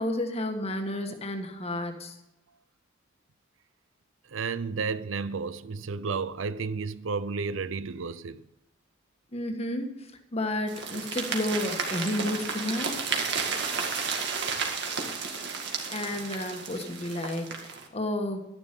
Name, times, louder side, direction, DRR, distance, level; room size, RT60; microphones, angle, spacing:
voice 1, 0.0-2.2 9.3-13.0 15.9-18.5, left 1 dB, 30° left, 1.5 m, -31 dB
voice 2, 4.2-8.4, right 4 dB, 75° right, 0.6 m, -32 dB
sound 1, 10.7-17.9, right 5 dB, 55° right, 2.0 m, -32 dB
12.5 x 11.0 x 5.3 m
head